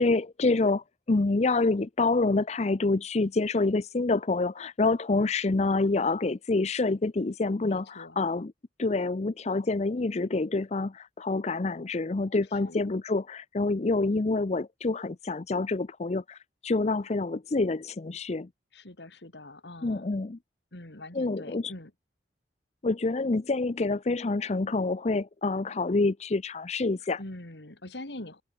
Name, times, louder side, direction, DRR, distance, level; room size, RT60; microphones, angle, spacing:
voice 1, 0.0-8.5 8.8-18.5 19.8-20.4 21.1-21.7 22.8-27.2, left 3 dB, 40° left, 0.6 m, -27 dB
voice 2, 7.6-8.2 12.5-12.8 18.7-20.1 20.7-21.9 27.2-28.4, left 1 dB, 70° left, 2.8 m, -43 dB
head